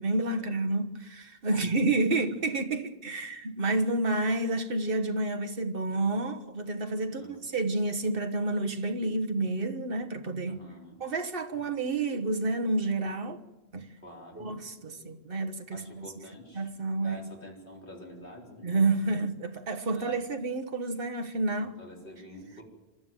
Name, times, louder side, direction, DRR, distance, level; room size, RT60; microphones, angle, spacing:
voice 1, 0.0-10.6 11.0-13.4 13.7-13.9 14.4-16.1 16.5-17.2 18.6-21.8, right 2 dB, 65° right, 1.5 m, -29 dB
voice 2, 7.1-7.5 10.5-11.0 11.5-11.7 14.0-15.1 15.7-16.7 17.0-18.7 19.0-19.1 19.9-20.2 21.8-22.6, left 1 dB, 60° left, 4.4 m, -48 dB
26.5 x 13.0 x 9.0 m
omnidirectional pair, 1.0 m